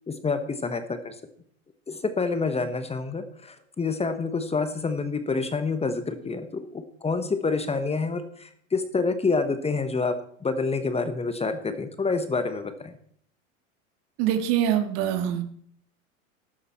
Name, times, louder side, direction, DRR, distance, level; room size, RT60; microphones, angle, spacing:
voice 1, 0.1-1.1 1.9-12.9, left 4 dB, 15° left, 9 dB, 1.2 m, -28 dB
voice 2, 14.2-15.4, right 10 dB, 55° right, 8 dB, 2.0 m, -24 dB
14.0 x 11.0 x 4.4 m, 0.63 s
hypercardioid pair, 100°, 40 cm